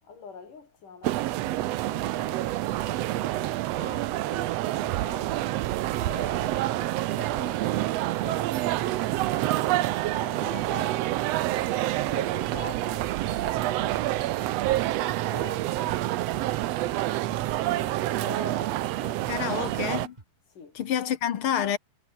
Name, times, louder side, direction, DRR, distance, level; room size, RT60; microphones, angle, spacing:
voice 1, 0.0-5.4 5.9-11.2 11.5-14.7 15.0-16.5 17.4-19.7 20.5-20.8, left 5 dB, 70° left, 6.5 m, -46 dB
sound 1, 1.0-20.1, right 15 dB, 80° right, 1.5 m, -27 dB
sound 2, 1.3-20.2, right 2 dB, 15° right, 2.5 m, -52 dB
voice 2, 19.3-20.1 20.7-21.8, left 9 dB, 55° left, 1.6 m, -28 dB
omnidirectional pair, 3.8 m